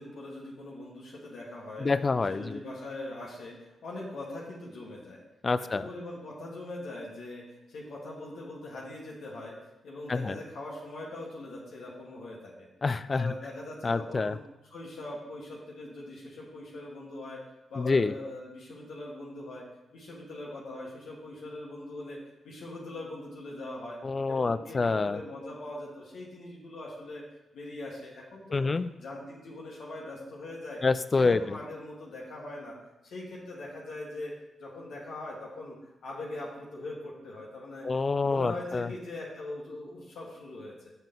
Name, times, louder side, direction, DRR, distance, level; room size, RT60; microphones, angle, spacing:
voice 1, 0.0-1.9 2.3-5.2 5.6-9.5 9.8-12.7 13.1-14.4 14.7-17.4 17.7-19.6 19.9-22.2 22.4-24.0 24.3-27.2 27.5-28.7 29.0-30.8 31.2-32.7 33.0-34.3 34.6-37.9 38.2-40.9, left 2 dB, 75° left, -4 dB, 1.3 m, -41 dB
voice 2, 1.8-2.6 5.4-5.8 10.1-10.4 12.8-13.3 13.8-14.3 17.8-18.1 24.0-25.2 28.5-28.9 30.8-31.4 37.8-38.9, left 4 dB, 40° left, 14 dB, 0.3 m, -27 dB
5.7 x 5.4 x 3.7 m, 0.95 s
hypercardioid pair, 45°, 0 cm